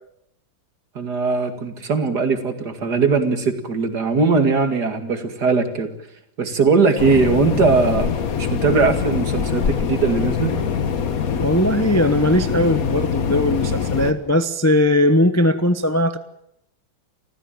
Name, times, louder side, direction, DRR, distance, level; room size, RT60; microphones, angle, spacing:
voice 1, 0.9-5.9 6.4-10.5, right 4 dB, 60° right, 7 dB, 2.8 m, -20 dB
sound 1, 7.0-14.1, left 7 dB, 50° left, 1.7 m, -23 dB
voice 2, 11.4-16.2, left 1 dB, 10° left, 9 dB, 0.8 m, -19 dB
29.0 x 15.0 x 9.0 m, 0.79 s
omnidirectional pair, 2.0 m